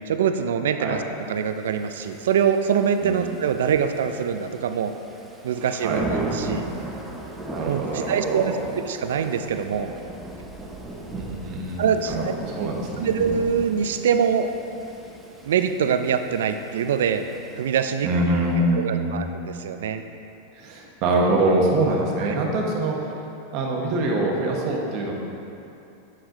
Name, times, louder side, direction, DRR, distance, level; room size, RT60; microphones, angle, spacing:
voice 1, 0.1-1.0 1.3-4.9 5.4-6.7 7.7-8.5 8.8-9.9 11.8-12.3 12.6-12.7 13.0-14.5 15.4-17.3 17.6-18.1 18.8-20.0 22.2-22.3, right 7 dB, 85° right, 8 dB, 0.4 m, -24 dB
Thunder / Rain, 1.6-18.2, right 2 dB, 5° right, 0.6 m, -37 dB
voice 2, 5.6-6.0 7.5-8.6 11.1-13.2 18.0-19.3 20.5-23.1 23.5-25.1, right 2 dB, 45° right, -2 dB, 1.1 m, -24 dB
7.3 x 4.9 x 3.8 m, 2.7 s
supercardioid pair, 140°, 0 cm